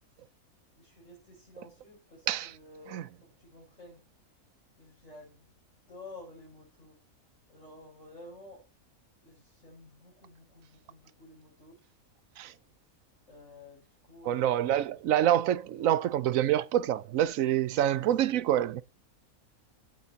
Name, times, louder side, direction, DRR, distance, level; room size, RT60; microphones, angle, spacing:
voice 1, 0.7-4.0 4.8-5.6 5.9-7.0 7.5-8.6 9.2-11.8 13.3-14.4, left 2 dB, 60° left, 7.1 m, -51 dB
voice 2, 14.2-18.8, right 11 dB, 70° right, 1.0 m, -26 dB
17.0 x 8.1 x 2.9 m
omnidirectional pair, 1.5 m